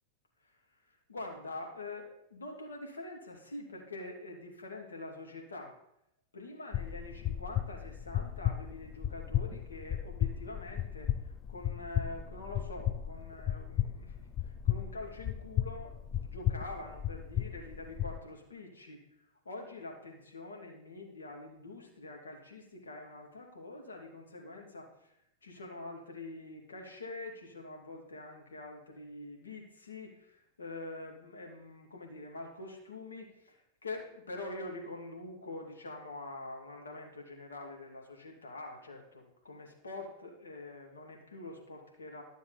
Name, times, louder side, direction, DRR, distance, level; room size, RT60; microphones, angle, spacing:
voice 1, 1.1-5.7 6.3-11.1 11.5-19.1 19.4-25.1 25.4-42.2, left 2 dB, 85° left, 0 dB, 2.3 m, -45 dB
sound 1, 6.7-18.2, left 11 dB, 35° left, 0.6 m, -35 dB
12.5 x 6.8 x 4.1 m, 0.79 s
hypercardioid pair, 95°, 0 cm